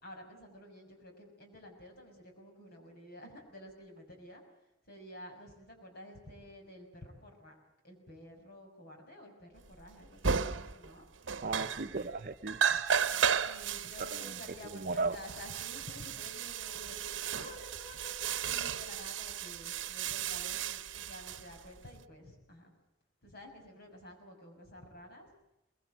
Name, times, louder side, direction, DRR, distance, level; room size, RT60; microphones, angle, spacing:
voice 1, 0.0-4.4 4.8-7.6 7.8-11.1 13.3-22.7 23.2-25.3, left 1 dB, 55° left, 3 dB, 6.0 m, -51 dB
sound 1, 9.8-9.9 10.2-10.9 11.2-12.2 12.5-22.0, right 7 dB, 80° right, 0.9 m, -34 dB
voice 2, 11.4-12.8 14.0-14.4 14.7-15.2, right 3 dB, 50° right, 10 dB, 0.8 m, -36 dB
23.0 x 21.5 x 7.9 m, 0.89 s
head